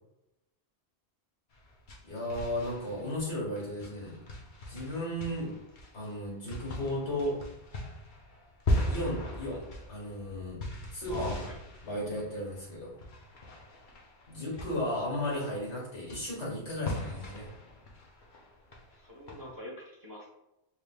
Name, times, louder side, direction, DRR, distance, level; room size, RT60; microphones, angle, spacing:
sound 1, 1.5-19.6, left 1 dB, 50° left, 0.8 m, -39 dB
voice 1, 2.0-4.2 4.7-5.5 5.9-7.4 8.9-9.6 9.9-10.6 10.9-11.4 11.8-12.9 14.3-17.5, left 1 dB, 80° left, -3 dB, 1.9 m, -35 dB
voice 2, 11.1-11.5 18.9-20.3, equal, 20° right, -4 dB, 0.9 m, -42 dB
5.0 x 3.4 x 2.3 m, 0.90 s
omnidirectional pair, 1.1 m